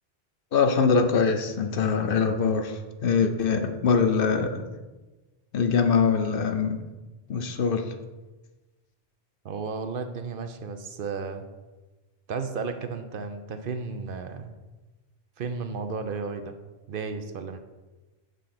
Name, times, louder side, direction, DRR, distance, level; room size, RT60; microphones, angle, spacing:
voice 1, 0.5-4.7 5.5-6.8 7.3-7.9, left 5 dB, 60° left, 6 dB, 0.8 m, -23 dB
voice 2, 9.4-11.4 12.3-14.5 15.4-16.5 16.9-17.6, right 5 dB, 65° right, 8 dB, 0.7 m, -33 dB
6.6 x 3.8 x 5.8 m, 1.2 s
omnidirectional pair, 1.1 m